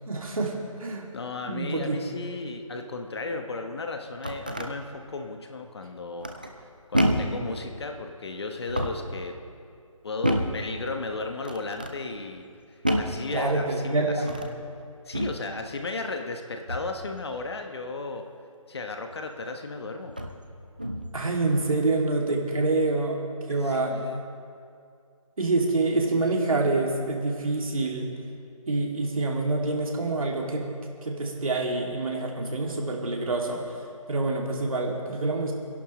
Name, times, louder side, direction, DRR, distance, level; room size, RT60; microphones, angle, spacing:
voice 1, 0.1-1.1 1.4-2.0 13.3-14.4 21.1-23.2 23.5-24.0 25.4-28.1 28.7-30.7 31.0-35.5, right 2 dB, 75° right, 0 dB, 2.5 m, -27 dB
voice 2, 1.1-6.3 6.6-9.4 10.0-12.5 13.0-14.4 15.0-18.3 18.7-20.1 23.6-24.2, left 3 dB, 50° left, 5 dB, 1.1 m, -35 dB
sound 1, 3.9-4.7 6.2-6.6 6.9-7.4 8.6-9.1 10.2-10.7 11.4-12.0 12.8-13.2 14.2-14.6 15.1-15.4 16.7-17.0 19.1-19.2 20.1-20.4 20.8-21.2, equal, 15° right, 0.3 m, -28 dB
27.5 x 11.0 x 3.1 m, 2.3 s
figure-of-eight pair, 165°, 18 cm